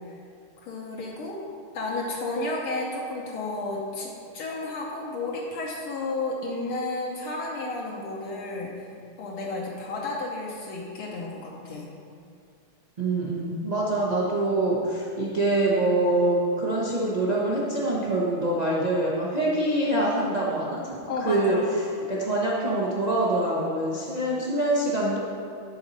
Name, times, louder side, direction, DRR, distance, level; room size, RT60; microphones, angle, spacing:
voice 1, 0.6-1.4 1.7-8.9 9.2-11.9 21.1-21.7, left 2 dB, 75° left, -3 dB, 1.8 m, -32 dB
voice 2, 13.0-21.6 22.1-25.2, right 1 dB, 90° right, -6 dB, 0.3 m, -25 dB
11.0 x 4.2 x 5.4 m, 2.3 s
omnidirectional pair, 2.4 m